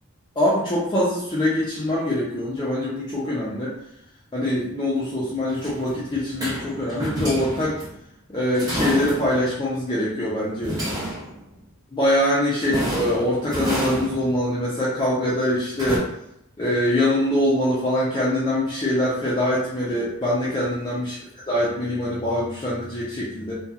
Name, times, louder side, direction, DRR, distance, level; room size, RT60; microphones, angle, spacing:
voice 1, 0.4-3.8 4.3-7.8 8.3-10.8 11.9-16.1 16.6-21.2 21.5-23.6, left 1 dB, 20° left, -8 dB, 0.4 m, -23 dB
sound 1, 5.5-7.9 8.5-9.5 10.6-11.5 12.6-14.4 15.8-16.0, equal, 15° right, 0.8 m, -29 dB
2.8 x 2.2 x 2.4 m, 0.78 s
head